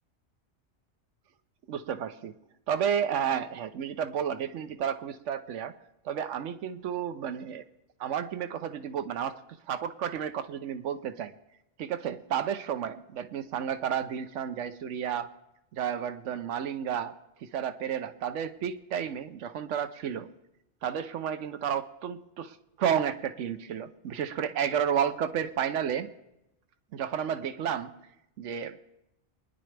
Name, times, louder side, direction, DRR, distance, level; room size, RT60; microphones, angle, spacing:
voice 1, 1.7-2.3 2.7-5.7 6.0-7.6 8.0-9.3 9.7-11.3 11.8-15.3 15.7-17.2 17.4-20.3 20.8-26.1 26.9-27.9 28.4-28.8, right 8 dB, 85° right, 11 dB, 1.0 m, -31 dB
24.5 x 10.0 x 3.3 m, 0.89 s
omnidirectional pair, 1.2 m